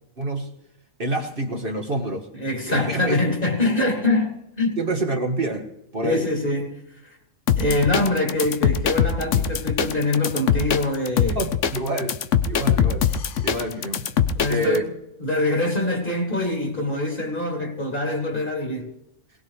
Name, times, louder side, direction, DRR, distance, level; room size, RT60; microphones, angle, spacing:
voice 1, 0.2-0.5 1.0-2.3 2.7-3.2 4.8-6.3 10.2-10.4 11.3-12.2 12.5-13.1 13.4-14.1 14.5-14.8, right 1 dB, 40° right, 1.5 m, -27 dB
voice 2, 2.3-4.8 6.0-6.8 7.5-11.4 14.4-14.8 15.2-18.9, left 2 dB, 35° left, 3.1 m, -24 dB
sound 1, 7.5-14.8, left 8 dB, 65° left, 1.0 m, -22 dB
22.5 x 19.0 x 3.2 m
omnidirectional pair, 1.5 m